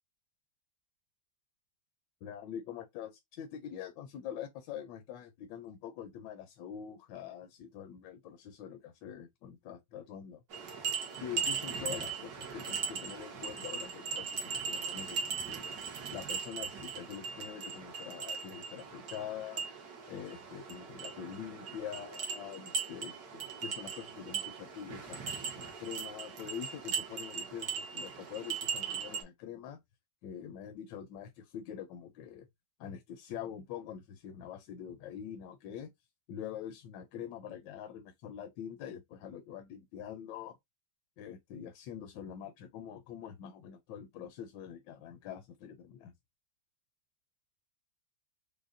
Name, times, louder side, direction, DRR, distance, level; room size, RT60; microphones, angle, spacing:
voice 1, 2.2-10.4 11.2-15.6 16.1-19.6 20.1-25.2 25.5-29.8 30.2-32.5 32.8-35.9 36.3-40.5 41.2-46.1, left 9 dB, 80° left, 1.2 m, -44 dB
sound 1, 10.5-29.2, right 6 dB, 60° right, 1.4 m, -39 dB
5.1 x 2.1 x 2.4 m
omnidirectional pair, 2.0 m